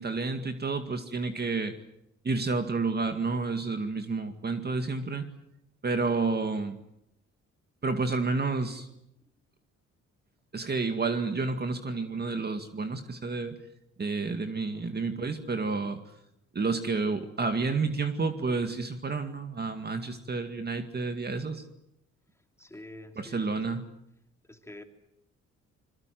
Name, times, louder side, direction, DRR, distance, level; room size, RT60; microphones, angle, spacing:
voice 1, 0.0-1.8 2.2-5.3 5.8-6.8 7.8-8.9 10.5-13.6 14.0-16.0 16.5-21.6 23.2-23.9, right 4 dB, 35° right, 7 dB, 2.1 m, -30 dB
voice 2, 22.6-23.7 24.5-24.8, left 1 dB, 10° left, 5 dB, 3.1 m, -47 dB
26.5 x 22.5 x 7.7 m, 0.80 s
cardioid pair, 90°, 30 cm